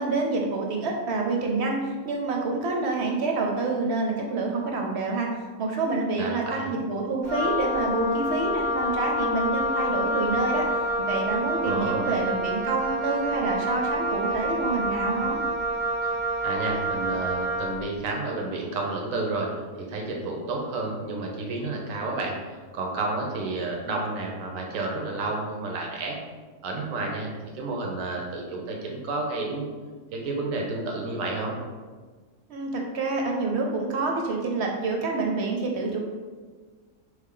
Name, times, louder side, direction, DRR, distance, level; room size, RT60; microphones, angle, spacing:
voice 1, 0.0-15.4 32.5-36.0, right 3 dB, 65° right, 0 dB, 0.8 m, -27 dB
voice 2, 6.2-6.6 11.6-12.1 16.4-19.5 19.9-22.4 22.7-26.2 26.6-29.7 30.1-31.6, right 3 dB, 85° right, 0 dB, 1.1 m, -30 dB
Wind instrument woodwind instrument, 7.2-17.8, equal, 25° left, 0.9 m, -28 dB
3.5 x 3.2 x 3.7 m, 1.4 s
omnidirectional pair, 1.3 m